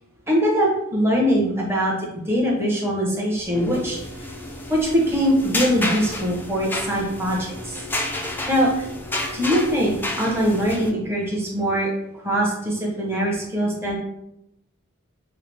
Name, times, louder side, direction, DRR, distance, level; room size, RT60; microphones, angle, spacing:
voice 1, 0.3-2.0 2.3-4.0 4.7-7.7 8.5-8.9 9.3-11.9 12.2-14.0, equal, 10° right, -3 dB, 1.0 m, -22 dB
sound 1, 3.4-10.9, left 1 dB, 10° left, 0.4 m, -30 dB
5.5 x 2.1 x 3.5 m, 0.82 s
head